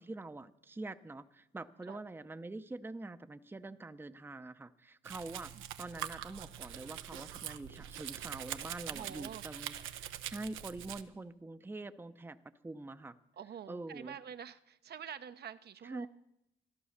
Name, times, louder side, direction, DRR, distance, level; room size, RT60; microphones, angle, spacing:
voice 1, 0.0-5.5 5.8-9.7 10.0-12.4 12.6-13.2 13.7-14.1 15.8-16.1, right 2 dB, 10° right, 11 dB, 0.7 m, -45 dB
Domestic sounds home sounds, 5.0-11.0, right 11 dB, 90° right, 0.8 m, -44 dB
voice 2, 8.9-9.4 13.3-16.1, right 8 dB, 55° right, 10 dB, 0.7 m, -47 dB
14.5 x 11.5 x 6.6 m, 0.83 s
cardioid pair, 90°, 20 cm